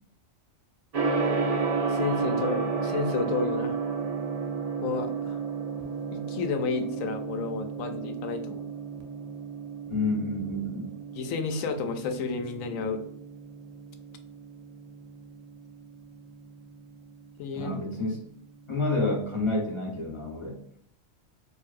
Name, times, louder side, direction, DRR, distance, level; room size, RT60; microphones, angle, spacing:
Gong, 0.9-19.9, right 4 dB, 55° right, 0.4 m, -33 dB
voice 1, 1.9-3.7 4.8-5.4 6.1-8.7 11.1-13.1 17.4-17.7, left 4 dB, 90° left, 7 dB, 1.0 m, -31 dB
voice 2, 9.9-10.9 17.5-18.2 18.7-20.6, left 2 dB, 25° left, -2 dB, 0.9 m, -29 dB
4.5 x 2.6 x 2.4 m, 0.68 s
omnidirectional pair, 1.3 m